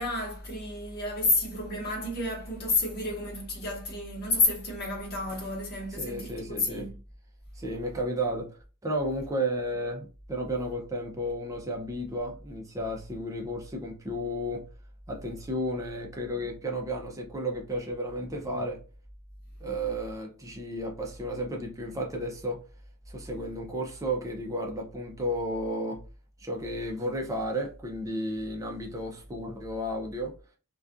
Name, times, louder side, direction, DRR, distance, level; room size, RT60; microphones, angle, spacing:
voice 1, 0.0-6.9, left 2 dB, 45° left, 1.0 m, -30 dB
voice 2, 5.9-6.9 7.5-14.6 15.1-18.8 19.6-22.6 23.1-26.0 26.4-30.3, equal, 15° right, 0.4 m, -33 dB
2.3 x 2.3 x 2.4 m
head